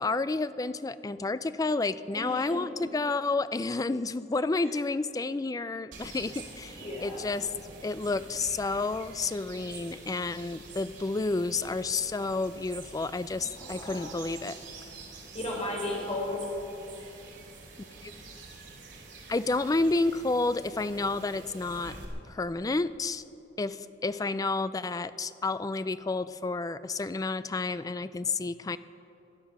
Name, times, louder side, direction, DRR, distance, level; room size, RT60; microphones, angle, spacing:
voice 1, 0.0-7.5 7.8-14.6 18.0-18.1 19.3-22.0 22.3-23.2 23.6-28.8, left 3 dB, 20° left, 14 dB, 0.3 m, -30 dB
voice 2, 2.1-2.6 4.6-4.7 6.8-7.3 13.6-14.2 15.3-16.5, left 1 dB, 35° left, -1 dB, 3.7 m, -35 dB
sound 1, 5.9-22.1, right 3 dB, 90° right, 2.9 m, -47 dB
18.0 x 11.5 x 5.9 m, 2.9 s
head